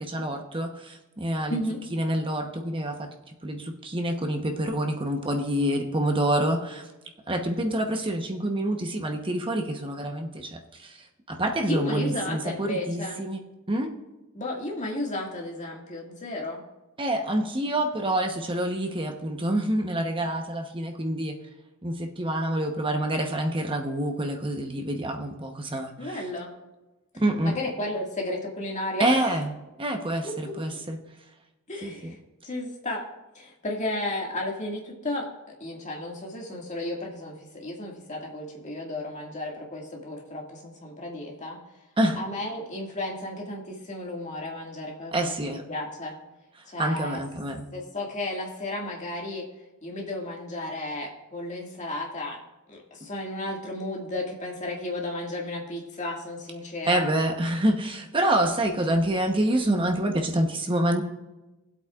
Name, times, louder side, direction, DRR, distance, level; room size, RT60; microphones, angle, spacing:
voice 1, 0.0-1.6 1.9-3.1 3.4-6.9 7.3-13.4 13.7-13.9 17.0-21.3 21.8-26.2 27.2-27.5 29.0-29.5 29.8-31.0 31.8-32.1 42.0-42.2 45.1-45.6 46.8-47.7 56.9-61.0, right 1 dB, 25° right, 3 dB, 0.9 m, -27 dB
voice 2, 1.5-1.8 11.7-13.2 14.3-16.6 26.0-26.5 27.4-29.3 30.2-30.9 31.7-32.2 32.4-33.0 33.3-41.6 42.2-46.2 46.7-47.2 47.7-49.5 49.8-52.4 52.7-57.1, left 1 dB, 35° left, -1 dB, 2.1 m, -33 dB
22.5 x 8.1 x 2.4 m, 1.1 s
head